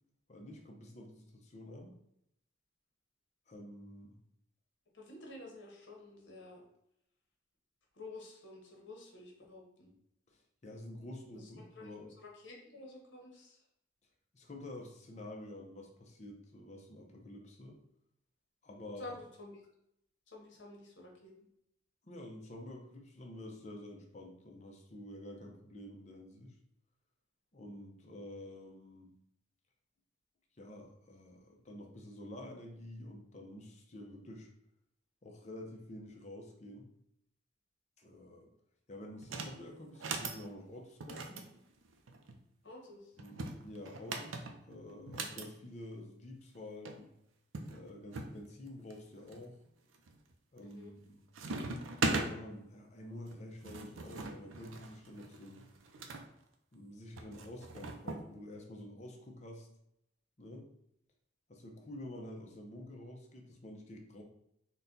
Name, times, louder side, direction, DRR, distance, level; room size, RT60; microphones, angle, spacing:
voice 1, 0.3-1.9 3.5-4.2 10.3-12.1 14.3-17.8 18.6-19.2 22.0-26.6 27.5-29.1 30.6-34.5 35.2-36.9 38.0-38.5 38.9-41.5 43.2-47.1 47.7-49.6 50.5-51.2 52.2-55.6 56.7-59.7 60.4-60.7 61.5-64.2, left 1 dB, 35° left, 1 dB, 0.6 m, -49 dB
voice 2, 4.9-6.6 7.9-9.9 11.3-11.9 12.2-13.6 18.8-19.6 20.3-21.3 42.6-43.1 50.6-50.9, left 2 dB, 65° left, -1 dB, 1.0 m, -51 dB
sound 1, 39.2-39.6 39.9-40.4 41.0-42.4 43.2-45.5 46.6-46.7 46.8-47.0 47.5-48.3 48.9-49.4 49.9-50.3 50.6-51.1 51.3-52.3 53.3-56.2 57.2-58.2, right 3 dB, 90° right, 0.5 m, -39 dB
4.0 x 2.2 x 3.8 m, 0.77 s
head